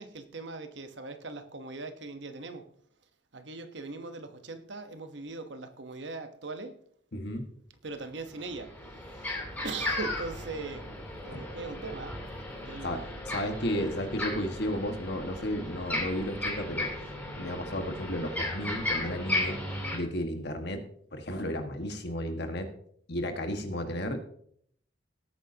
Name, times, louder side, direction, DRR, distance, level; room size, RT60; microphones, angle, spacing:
voice 1, 0.0-2.6 3.3-6.7 7.8-8.7 9.2-9.3 9.6-10.9 11.3-12.2 12.6-13.1, right 3 dB, 70° right, 1.1 m, -40 dB
voice 2, 7.1-7.5 11.2-11.4 12.8-16.9 17.3-19.6 19.9-20.8 21.1-22.7 23.1-24.2, equal, 65° left, 1.7 m, -33 dB
sound 1, 8.4-20.0, left 1 dB, 10° left, 3.2 m, -35 dB
18.5 x 8.7 x 2.9 m
head